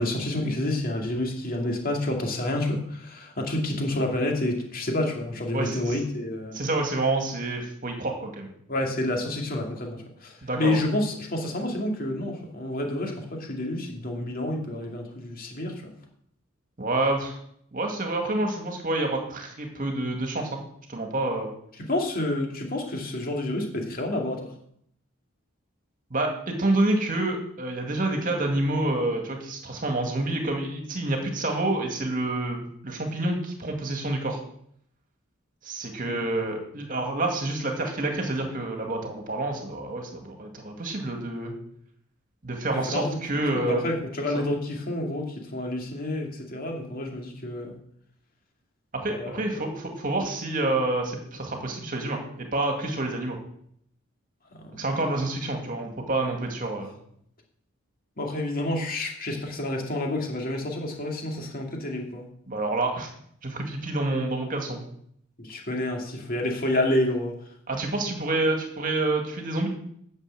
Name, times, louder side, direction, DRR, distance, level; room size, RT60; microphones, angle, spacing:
voice 1, 0.0-6.6 8.7-15.9 21.8-24.4 36.0-36.2 42.9-43.2 43.5-47.8 49.1-49.4 58.2-62.3 65.4-67.3, left 1 dB, 45° left, 1 dB, 2.4 m, -29 dB
voice 2, 5.5-6.0 6.5-8.5 10.4-10.8 16.8-17.4 17.7-20.6 20.9-21.5 26.1-34.4 35.6-41.5 42.4-43.9 44.3-44.4 48.9-53.4 54.7-57.0 62.5-63.1 63.4-64.8 67.7-69.7, right 2 dB, 40° right, 3 dB, 2.1 m, -28 dB
9.9 x 6.8 x 7.6 m, 0.69 s
head